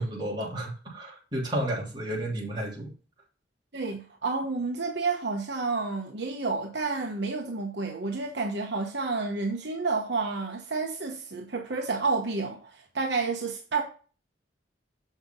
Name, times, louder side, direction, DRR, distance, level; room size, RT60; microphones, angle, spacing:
voice 1, 0.0-2.9, right 1 dB, 25° right, 3.0 m, -32 dB
voice 2, 3.7-13.8, right 4 dB, 65° right, 1.1 m, -30 dB
7.3 x 6.1 x 3.8 m
head